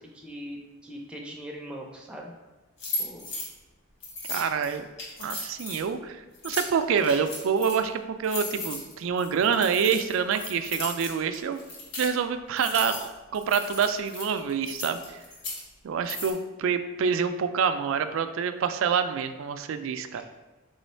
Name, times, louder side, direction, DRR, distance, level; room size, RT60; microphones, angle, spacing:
voice 1, 0.0-2.3 3.0-3.2 20.1-20.2, equal, 5° right, -1 dB, 0.5 m, -41 dB
sound 1, 2.8-3.5 4.0-5.8 6.3-7.8 8.2-12.1 12.6-13.1 13.3-15.6 16.1-16.3, left 2 dB, 60° left, 1.1 m, -36 dB
voice 2, 4.3-4.9 5.2-11.6 12.0-15.2 15.8-20.2, right 6 dB, 70° right, 9 dB, 0.3 m, -27 dB
3.3 x 3.1 x 4.3 m, 1.2 s
head